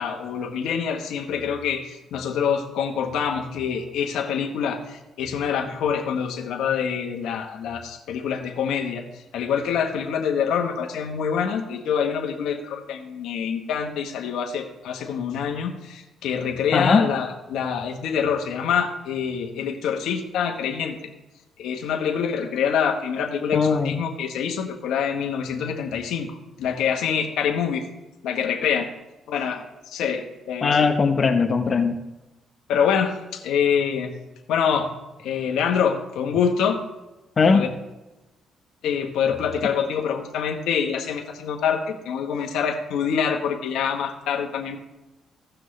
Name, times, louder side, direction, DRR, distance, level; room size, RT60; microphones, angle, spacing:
voice 1, 0.0-21.0 21.6-27.9 28.2-28.9 29.3-30.8 32.7-34.1 34.5-34.9 35.2-36.8 37.5-37.7 38.8-44.8, left 7 dB, 80° left, 2 dB, 1.1 m, -25 dB
voice 2, 16.7-17.1 23.5-24.0 30.6-32.0 37.4-37.6, left 5 dB, 40° left, 6 dB, 0.8 m, -19 dB
16.0 x 6.1 x 3.2 m, 1.1 s
cardioid pair, 90°, 0 cm